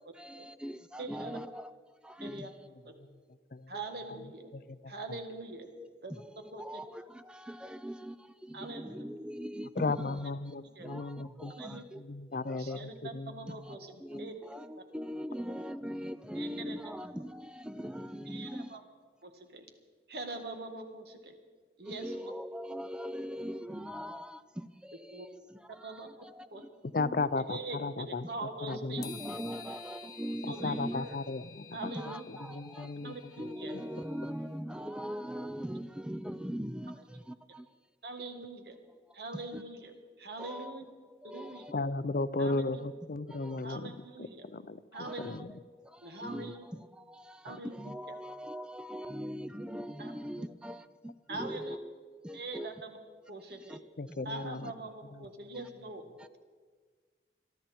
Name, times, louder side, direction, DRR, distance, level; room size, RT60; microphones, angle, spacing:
voice 1, 0.1-1.8 2.0-2.7 5.7-12.0 12.4-12.8 13.5-18.8 21.8-27.3 28.7-31.2 31.8-37.7 39.3-39.6 40.4-40.8 41.2-41.7 43.3-43.6 44.9-45.4 45.8-52.7 53.6-53.8 54.1-54.2 55.5-55.6 56.2-56.5, equal, 5° right, 12 dB, 0.4 m, -41 dB
voice 2, 1.0-1.4 2.2-2.5 3.7-4.5 4.9-5.7 6.0-6.1 6.5-6.8 8.5-9.0 10.8-10.9 11.6-11.8 12.6-13.9 14.2-14.4 16.4-16.9 18.3-18.8 19.2-19.7 20.1-21.3 21.8-22.3 25.1-25.3 25.8-26.1 26.5-26.6 27.3-29.1 30.5-31.2 31.7-32.3 33.0-33.8 38.0-38.8 39.1-40.8 41.3-41.6 42.4-42.8 43.6-44.5 44.9-45.4 46.0-46.6 47.4-47.7 50.0-50.1 51.3-51.8 52.3-53.0 53.3-53.8 54.2-56.0, right 2 dB, 65° right, 5 dB, 1.8 m, -43 dB
voice 3, 9.8-11.5 12.1-13.3 26.9-28.2 28.6-29.1 30.6-31.8 32.5-33.1 41.7-43.8 44.5-44.8 45.2-45.4 54.0-54.7, left 3 dB, 50° left, 15 dB, 0.5 m, -34 dB
sound 1, 29.0-34.3, left 7 dB, 20° left, 0.8 m, -51 dB
22.5 x 13.0 x 4.4 m, 1.6 s
head